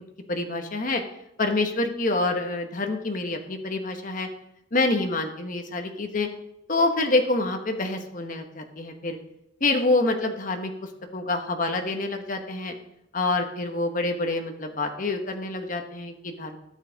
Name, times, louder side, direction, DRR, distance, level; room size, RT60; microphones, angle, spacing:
voice 1, 0.3-1.0 1.4-4.3 4.7-6.3 6.7-9.2 9.6-10.7 11.1-12.7 13.1-16.6, left 2 dB, 40° left, 5 dB, 1.1 m, -26 dB
13.0 x 7.2 x 3.9 m, 0.83 s
head